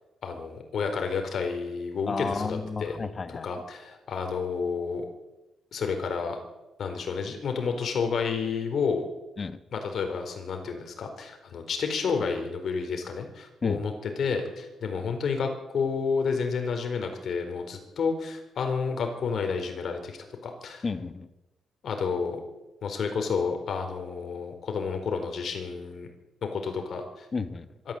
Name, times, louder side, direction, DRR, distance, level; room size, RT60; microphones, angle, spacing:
voice 1, 0.2-2.9 3.3-5.0 5.7-6.4 6.8-9.1 9.7-20.8 21.8-22.4 22.8-26.1 26.4-27.3 27.9-28.0, left 5 dB, 55° left, 5 dB, 4.4 m, -30 dB
voice 2, 2.1-3.5 9.4-9.6 13.6-13.8 20.8-21.3 27.3-27.6, left 4 dB, 30° left, 11 dB, 1.4 m, -31 dB
24.0 x 13.5 x 8.0 m, 1.0 s
wide cardioid pair, 155°, 0 cm